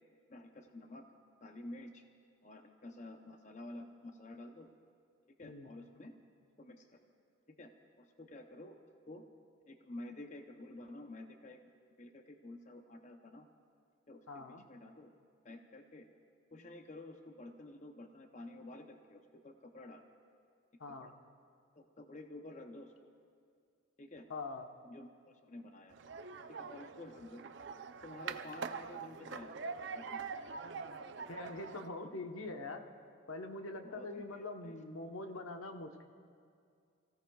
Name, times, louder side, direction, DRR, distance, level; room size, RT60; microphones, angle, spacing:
voice 1, 0.3-1.0 1.4-2.0 2.4-4.7 5.4-6.1 6.6-7.0 7.5-7.7 8.0-8.8 9.1-9.3 9.7-11.6 12.0-13.5 14.1-15.1 15.4-16.1 16.5-20.0 20.9-21.1 21.8-22.9 24.0-24.3 24.8-26.0 26.5-27.4 28.0-30.3 33.8-34.8, left 1 dB, 35° left, 5 dB, 0.6 m, -51 dB
voice 2, 14.3-14.6 20.8-21.1 24.3-24.7 31.3-32.9 33.3-36.0, left 2 dB, 85° left, 5 dB, 1.0 m, -44 dB
sound 1, 25.9-31.9, right 5 dB, 55° right, 0.5 m, -44 dB
29.5 x 16.0 x 2.3 m, 2.3 s
head